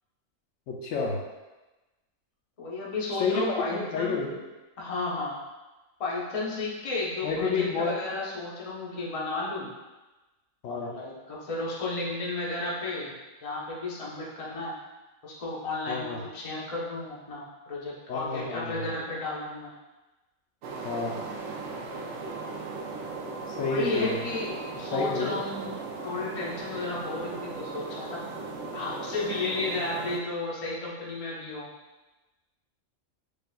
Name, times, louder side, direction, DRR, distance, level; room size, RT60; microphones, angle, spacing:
voice 1, 0.7-1.2 3.2-4.4 7.2-8.0 10.6-10.9 15.9-16.2 18.1-18.9 20.8-21.2 23.5-24.2 24.9-25.4, left 4 dB, 75° left, -2 dB, 1.0 m, -29 dB
voice 2, 2.6-4.2 4.8-5.4 6.0-9.7 10.6-13.1 13.4-14.7 15.2-19.7 23.6-25.7 26.0-28.2 28.7-31.7, left 3 dB, 35° left, -5 dB, 0.7 m, -33 dB
sound 1, 20.6-30.2, right 3 dB, 70° right, 0.8 m, -37 dB
6.6 x 2.4 x 2.2 m, 1.1 s
omnidirectional pair, 1.4 m